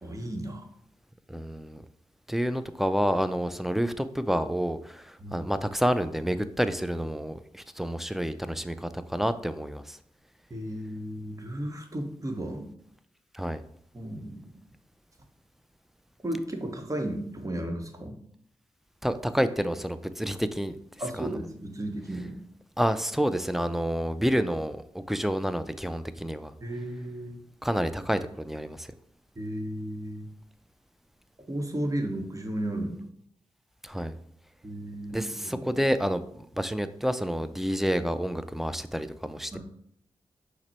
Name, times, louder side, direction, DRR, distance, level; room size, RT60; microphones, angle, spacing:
voice 1, 0.0-0.7 5.2-5.4 10.5-12.7 13.9-14.5 16.2-18.2 21.0-22.4 26.6-27.4 29.4-30.3 31.5-33.0 34.6-35.8 39.5-39.6, right 1 dB, 30° right, 4 dB, 0.9 m, -34 dB
voice 2, 1.3-1.8 2.3-10.0 13.3-13.6 19.0-20.8 21.2-21.3 22.8-26.5 27.6-28.9 33.8-34.1 35.1-39.6, equal, 5° right, 11 dB, 0.4 m, -29 dB
5.8 x 2.0 x 4.3 m, 0.68 s
cardioid pair, 45°, 11 cm